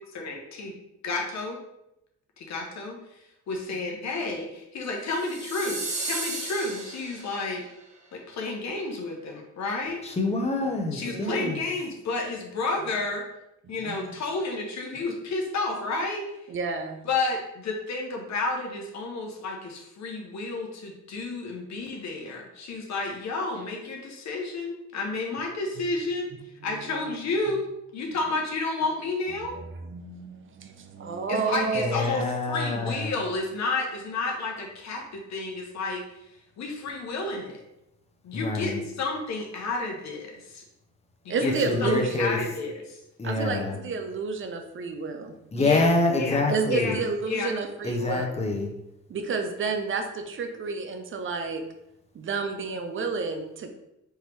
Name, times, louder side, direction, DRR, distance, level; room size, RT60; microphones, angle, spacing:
voice 1, 0.1-0.7 1.0-1.6 2.4-3.0 3.5-7.6 8.1-10.0 10.9-13.2 13.7-16.2 17.0-26.3 26.6-27.7 27.9-29.6 31.3-32.2 32.5-36.0 36.6-37.6 38.2-40.6 41.2-41.5 41.8-41.9 42.2-43.0 45.6-45.9 46.2-46.4 46.7-47.0 47.2-47.5, left 3 dB, 65° left, 1 dB, 0.9 m, -31 dB
sound 1, 5.1-7.6, right 3 dB, 25° right, 1.0 m, -34 dB
voice 2, 10.0-11.6 31.8-33.1 38.3-38.8 41.4-42.4 43.2-43.8 45.5-47.0 47.8-48.7, left 2 dB, 20° left, 2 dB, 0.8 m, -26 dB
voice 3, 11.0-11.5 13.8-14.0 16.5-17.0 26.9-27.0 29.5-32.0 41.3-42.3 43.2-45.3 46.5-48.3 49.1-51.6 52.1-53.7, right 4 dB, 40° right, 6 dB, 0.7 m, -30 dB
4.5 x 2.9 x 3.4 m, 0.86 s
cardioid pair, 90°, 30 cm